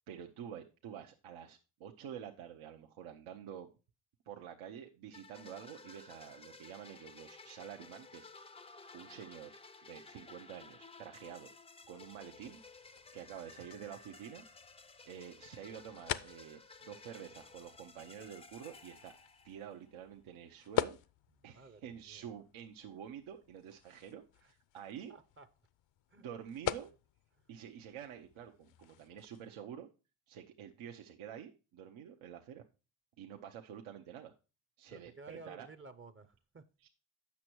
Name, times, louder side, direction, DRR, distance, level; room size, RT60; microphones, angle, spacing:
voice 1, 0.1-3.7 4.3-8.3 8.9-9.6 9.8-11.5 11.9-12.6 13.1-14.5 15.1-19.1 19.4-21.0 21.4-25.1 26.2-26.9 27.5-29.9 30.3-32.6 33.2-34.3 34.8-35.7 36.8-36.9, right 9 dB, 75° right, 1.0 m, -48 dB
sound 1, 5.1-19.9, left 4 dB, 15° left, 0.4 m, -56 dB
sound 2, 11.8-29.5, left 12 dB, 65° left, 0.7 m, -45 dB
voice 2, 21.4-22.3 24.4-24.5 25.1-25.5 26.1-26.2 34.9-36.9, right 3 dB, 25° right, 0.6 m, -54 dB
8.4 x 6.2 x 4.5 m
cardioid pair, 100°, 49 cm